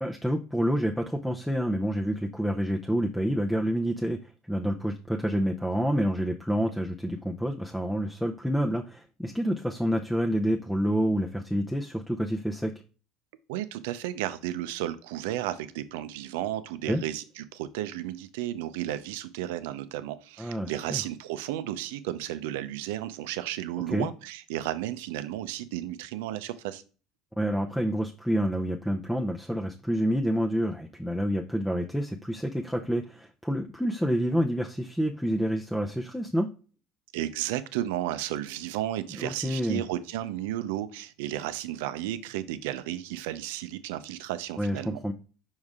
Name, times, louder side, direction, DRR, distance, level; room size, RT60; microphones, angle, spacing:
voice 1, 0.0-12.7 16.9-17.0 20.4-21.0 23.9-24.1 27.4-36.5 39.2-39.8 44.6-45.1, equal, ahead, 2 dB, 0.6 m, -28 dB
voice 2, 13.5-26.8 37.1-45.0, right 13 dB, 75° right, 12 dB, 0.5 m, -33 dB
5.4 x 4.9 x 3.5 m, 0.36 s
hypercardioid pair, 80°, 0 cm